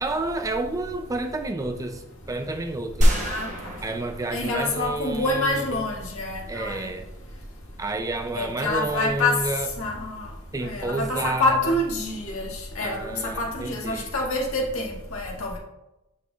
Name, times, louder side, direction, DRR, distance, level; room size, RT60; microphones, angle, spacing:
voice 1, 0.0-3.2 3.8-5.6 6.5-7.1 7.8-9.7 10.5-11.6 12.8-14.1, right 2 dB, 15° right, 6 dB, 0.4 m, -30 dB
sound 1, 3.0-5.3, equal, 35° right, 1.0 m, -25 dB
voice 2, 3.1-3.5 4.3-6.9 8.3-9.4 9.8-10.3 10.6-15.6, left 2 dB, 75° left, -2 dB, 1.8 m, -27 dB
7.8 x 5.5 x 2.4 m, 0.96 s
head